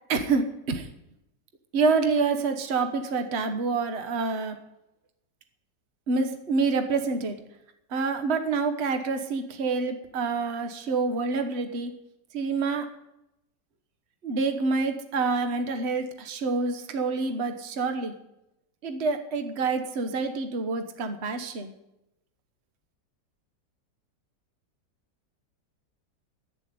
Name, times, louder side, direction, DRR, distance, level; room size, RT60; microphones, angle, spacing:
voice 1, 0.1-0.9 1.7-4.6 6.1-7.4 7.9-11.9 12.3-12.9 14.2-18.2 18.8-21.7, right 4 dB, 40° right, 7 dB, 1.3 m, -27 dB
11.0 x 9.7 x 9.5 m, 0.89 s
omnidirectional pair, 2.0 m